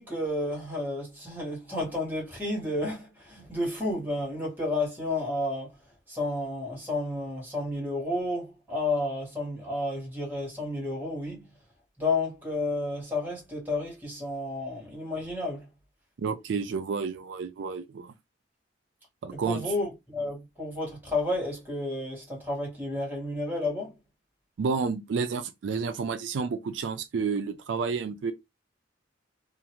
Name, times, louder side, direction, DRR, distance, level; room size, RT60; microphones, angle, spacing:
voice 1, 0.0-5.8 6.1-11.5 12.0-15.7 19.3-23.9, left 2 dB, 10° right, 1.4 m, -31 dB
voice 2, 16.2-18.1 19.2-19.7 24.6-28.3, right 5 dB, 80° right, 0.4 m, -30 dB
2.5 x 2.4 x 2.9 m
head